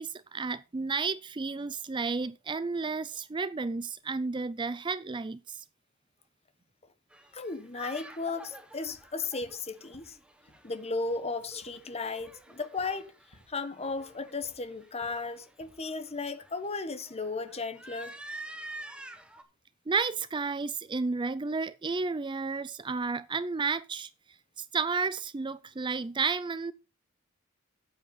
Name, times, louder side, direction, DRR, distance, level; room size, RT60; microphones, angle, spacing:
voice 1, 0.0-5.6 19.9-24.1 24.6-26.7, right 4 dB, 20° right, 0.4 m, -32 dB
sound 1, 7.1-19.4, right 1 dB, 5° right, 1.2 m, -48 dB
voice 2, 7.3-10.2 10.6-13.1 13.5-18.2, left 3 dB, 30° left, 1.0 m, -35 dB
sound 2, 8.9-9.7 9.9-10.7 11.0-11.3 11.6-11.8 12.2-12.5 12.8-13.1 13.3-13.6 13.9-14.7 15.0-15.3 15.6-15.9, left 1 dB, 70° left, 2.6 m, -62 dB
9.3 x 7.9 x 5.2 m
head